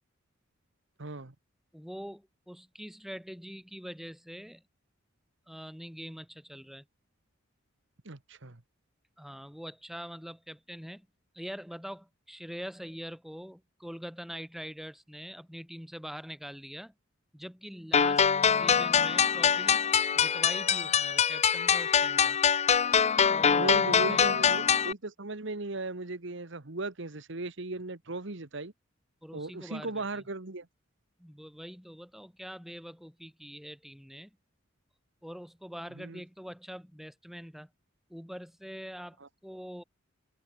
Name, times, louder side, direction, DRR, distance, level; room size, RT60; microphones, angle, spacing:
voice 1, 1.0-1.3 8.0-8.6 23.5-28.7 29.3-30.7 35.9-36.2 39.2-39.3, right 2 dB, 65° right, 1.5 m, -37 dB
voice 2, 1.7-4.6 5.5-6.8 9.2-11.1 11.3-16.9 17.3-22.4 23.3-24.3 29.2-30.2 31.2-34.3 35.2-37.7 38.1-39.8, equal, ahead, 3.3 m, -44 dB
sound 1, 17.9-24.9, left 7 dB, 35° left, 0.6 m, -24 dB
head